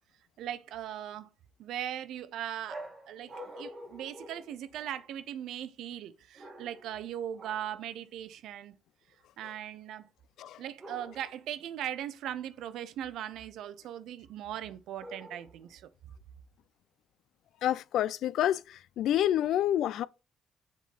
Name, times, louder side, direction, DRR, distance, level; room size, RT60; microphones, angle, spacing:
voice 1, 0.4-1.3 1.6-8.8 9.4-10.1 10.6-15.8, right 11 dB, 85° right, 0.5 m, -39 dB
sound 1, 2.7-5.2 6.4-7.0 7.4-7.8 10.8-11.5 15.0-15.7, equal, 30° right, 1.6 m, -47 dB
voice 2, 17.6-18.6 19.0-20.1, left 11 dB, 80° left, 0.3 m, -27 dB
7.2 x 3.7 x 4.1 m
cardioid pair, 90°, 0 cm